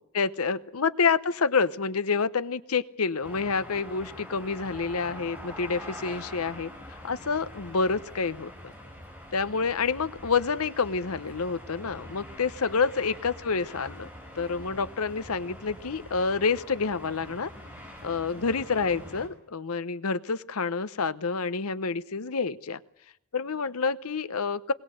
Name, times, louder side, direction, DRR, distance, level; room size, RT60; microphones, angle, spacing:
voice 1, 0.0-8.7 9.3-14.1 14.4-17.5 18.0-22.8 23.3-24.7, left 5 dB, 85° left, 14 dB, 0.9 m, -28 dB
sound 1, 3.2-19.3, equal, 5° right, 5.7 m, -44 dB
21.0 x 19.0 x 7.8 m, 0.81 s
head